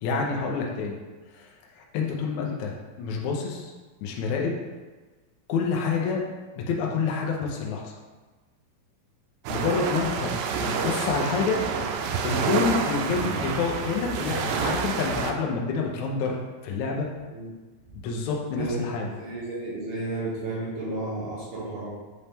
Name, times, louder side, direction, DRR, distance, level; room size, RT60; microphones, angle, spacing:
voice 1, 0.0-0.9 1.4-1.5 1.8-3.7 4.0-4.5 5.5-6.3 6.6-7.9 9.5-11.6 12.2-16.4 16.6-17.1 18.0-19.1, left 5 dB, 85° left, 0 dB, 1.6 m, -28 dB
sound 1, 9.4-15.3, right 6 dB, 85° right, 1.9 m, -28 dB
voice 2, 19.0-21.9, right 2 dB, 65° right, -7 dB, 2.5 m, -32 dB
7.2 x 4.2 x 3.5 m, 1.3 s
omnidirectional pair, 4.5 m